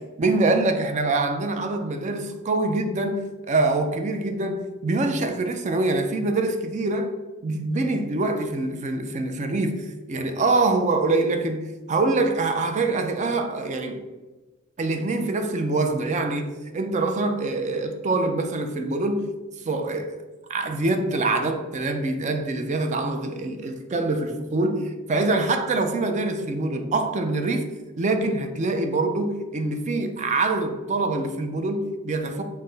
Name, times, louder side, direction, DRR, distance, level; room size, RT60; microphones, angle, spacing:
voice 1, 0.2-7.1 7.4-14.1 14.8-19.3 19.6-20.2 20.5-27.7 28.0-32.4, right 2 dB, 35° right, 0.4 m, -25 dB
5.6 x 2.1 x 3.9 m
head